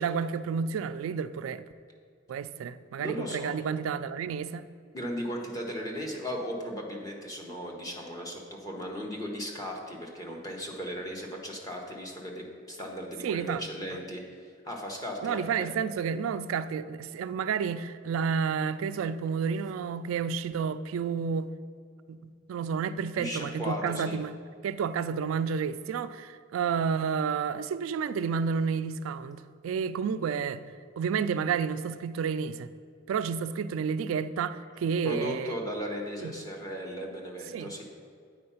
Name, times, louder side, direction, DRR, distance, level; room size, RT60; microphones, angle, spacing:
voice 1, 0.0-1.6 2.3-4.7 13.2-13.6 15.2-21.5 22.1-24.3 24.6-30.6 31.0-32.7 33.1-35.5 36.2-36.3 37.5-37.7, right 6 dB, 85° right, 0.3 m, -30 dB
voice 2, 3.0-3.6 4.9-15.7 23.2-24.2 35.0-37.8, equal, 15° left, 1.0 m, -36 dB
8.6 x 4.6 x 5.6 m
head